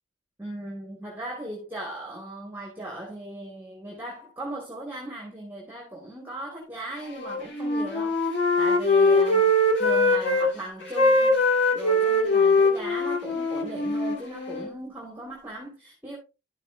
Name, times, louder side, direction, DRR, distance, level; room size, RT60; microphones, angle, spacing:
voice 1, 0.4-9.5 9.8-11.5 11.7-16.2, right 1 dB, 10° right, 2.3 m, -38 dB
Wind instrument woodwind instrument, 7.1-10.5 10.8-14.7, left 2 dB, 60° left, 2.5 m, -22 dB
12.0 x 6.2 x 2.8 m
head